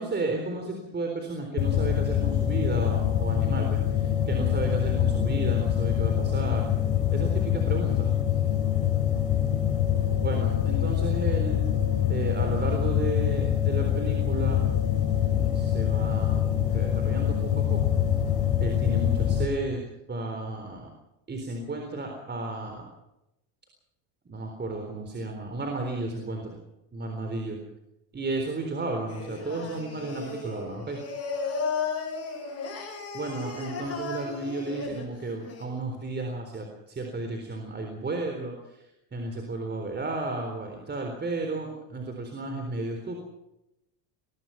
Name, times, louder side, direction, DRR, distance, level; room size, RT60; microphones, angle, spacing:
voice 1, 0.0-6.7 7.1-8.1 10.2-11.6 12.1-14.6 15.5-17.8 18.6-19.8 20.1-20.9 21.3-22.9 24.3-26.6 26.9-27.6 28.1-31.0 33.1-38.8 39.1-43.1, right 2 dB, 20° right, 3 dB, 3.9 m, -33 dB
sound 1, 1.6-19.4, left 10 dB, 55° left, 5.6 m, -25 dB
Singing, 29.1-35.6, left 4 dB, 30° left, 7.3 m, -35 dB
22.0 x 20.5 x 5.8 m, 0.88 s
supercardioid pair, 125°, 50 cm